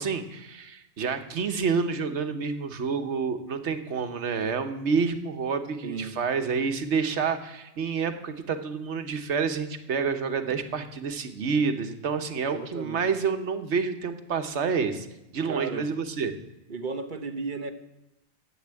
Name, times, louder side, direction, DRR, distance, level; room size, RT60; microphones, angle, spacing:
voice 1, 0.0-15.1 15.3-16.3, right 5 dB, 85° right, 8 dB, 1.3 m, -28 dB
voice 2, 5.8-6.2 12.4-13.1 15.4-15.9 16.7-17.7, right 4 dB, 50° right, 8 dB, 1.1 m, -34 dB
11.5 x 7.9 x 8.9 m, 0.95 s
omnidirectional pair, 1.1 m